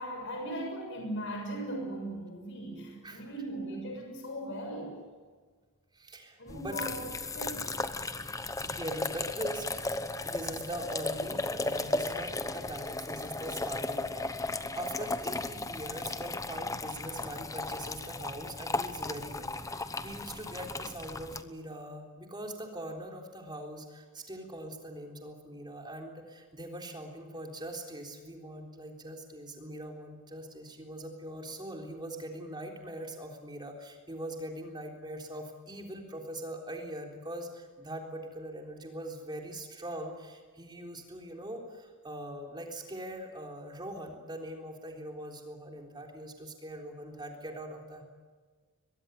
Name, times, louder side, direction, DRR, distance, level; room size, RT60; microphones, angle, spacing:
voice 1, 0.0-5.0 6.4-7.7, right 1 dB, 55° left, 2 dB, 6.7 m, -38 dB
voice 2, 5.9-6.8 8.6-48.0, right 1 dB, 20° right, 2 dB, 3.7 m, -42 dB
sound 1, 6.5-21.4, left 2 dB, 15° left, 0.9 m, -35 dB
22.5 x 22.0 x 9.3 m, 1.5 s
head